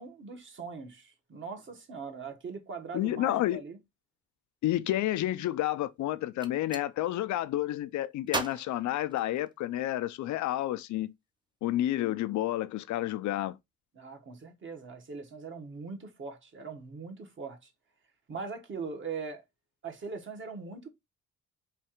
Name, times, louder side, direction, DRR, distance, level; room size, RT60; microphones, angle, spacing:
voice 1, 0.0-3.8 13.9-17.7 18.3-19.4 19.8-20.9, right 5 dB, 40° right, 1.2 m, -41 dB
voice 2, 2.9-3.6 4.6-11.1 11.6-13.6, left 14 dB, 70° left, 0.5 m, -30 dB
Gunshot gunfire, 6.2-6.9 8.3-9.8, right 3 dB, 15° right, 0.6 m, -37 dB
3.3 x 2.4 x 4.3 m
cardioid pair, 90°, 30 cm